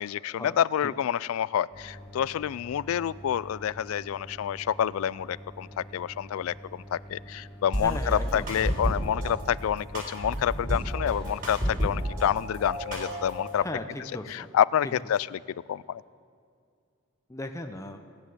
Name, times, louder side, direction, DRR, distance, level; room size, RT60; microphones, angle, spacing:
voice 1, 0.0-13.6 14.0-15.4 15.7-16.0, left 9 dB, 75° left, 21 dB, 0.3 m, -28 dB
sound 1, 1.7-13.6, equal, 5° right, 1.6 m, -47 dB
sound 2, 7.7-9.3 9.9-12.2 12.5-13.5, equal, 40° right, 4.1 m, -30 dB
voice 2, 7.8-8.5 13.6-14.5 14.8-14.9 17.3-18.0, left 1 dB, 15° left, 5 dB, 0.6 m, -37 dB
17.5 x 9.8 x 7.9 m, 2.3 s
head